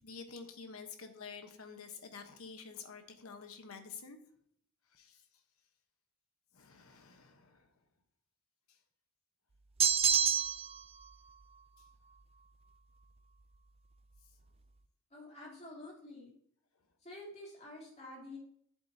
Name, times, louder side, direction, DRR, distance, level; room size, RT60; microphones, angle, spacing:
voice 1, 0.0-4.2 4.9-5.2 6.5-7.7, left 5 dB, 85° left, 6 dB, 1.1 m, -49 dB
sound 1, 9.8-10.8, right 8 dB, 30° right, 0.4 m, -27 dB
voice 2, 15.1-16.3 17.0-18.4, left 1 dB, 35° left, -4 dB, 3.0 m, -49 dB
10.5 x 7.6 x 2.8 m, 0.64 s
head